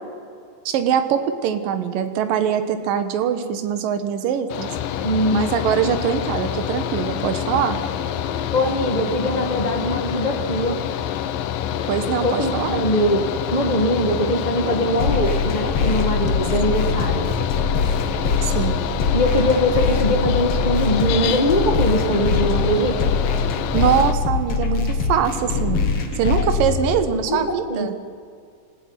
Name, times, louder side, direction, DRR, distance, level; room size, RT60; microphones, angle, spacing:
voice 1, 0.7-4.8 5.3-7.8 11.9-12.8 18.4-18.9 23.7-27.9, right 8 dB, 70° right, 8 dB, 3.0 m, -23 dB
Mechanical fan, 4.5-24.1, left 10 dB, 75° left, 2.5 m, -26 dB
voice 2, 5.0-5.6 8.5-10.8 12.2-13.2 13.5-17.3 19.1-23.1 26.2-26.4 27.1-28.0, equal, 30° left, 4 dB, 0.8 m, -22 dB
sound 1, 15.0-27.0, left 4 dB, 45° left, 2.5 m, -23 dB
26.5 x 15.5 x 9.8 m, 2.3 s
omnidirectional pair, 4.3 m